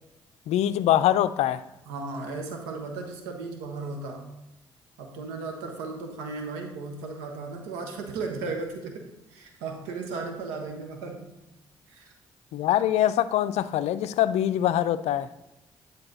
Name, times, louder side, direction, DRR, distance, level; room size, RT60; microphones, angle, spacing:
voice 1, 0.5-1.6 12.5-15.3, left 12 dB, 65° left, 14 dB, 0.4 m, -23 dB
voice 2, 1.9-4.3 5.0-9.0 9.3-11.3 11.9-12.1, right 3 dB, 80° right, 3 dB, 1.2 m, -35 dB
9.8 x 4.1 x 4.0 m, 0.99 s
hypercardioid pair, 45°, 12 cm